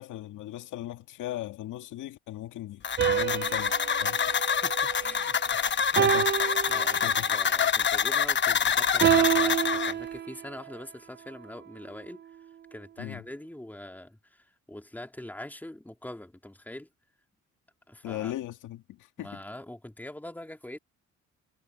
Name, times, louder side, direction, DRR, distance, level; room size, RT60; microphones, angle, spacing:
voice 1, 0.0-4.2 6.0-6.3 7.0-7.3 13.0-13.2 18.0-19.4, left 14 dB, 90° left, 2.1 m, -38 dB
sound 1, 2.8-9.9, left 7 dB, 40° left, 0.9 m, -26 dB
sound 2, 3.0-5.4 6.0-7.4 9.0-10.7, right 9 dB, 35° right, 0.5 m, -28 dB
voice 2, 4.3-6.0 6.7-12.2 12.7-16.9 17.9-18.3 19.2-20.8, left 1 dB, 5° left, 2.5 m, -43 dB
cardioid pair, 90°, 30 cm